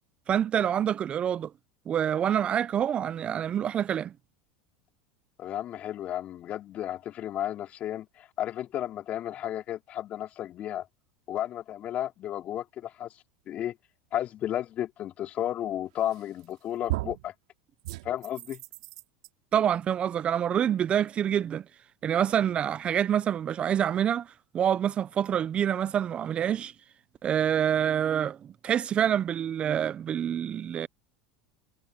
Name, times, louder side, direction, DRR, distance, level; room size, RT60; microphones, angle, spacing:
voice 1, 0.3-1.5 1.9-4.1 19.5-21.6 22.0-26.7 27.2-28.4 28.6-30.9, right 9 dB, 35° right, 0.8 m, -26 dB
voice 2, 5.4-10.9 11.3-13.1 13.5-13.7 14.1-17.3 18.0-18.6, left 12 dB, 45° left, 3.9 m, -33 dB
sound 1, 16.1-16.5 16.9-17.3 17.8-19.3, right 20 dB, 70° right, 3.2 m, -35 dB
hypercardioid pair, 95°, 3 cm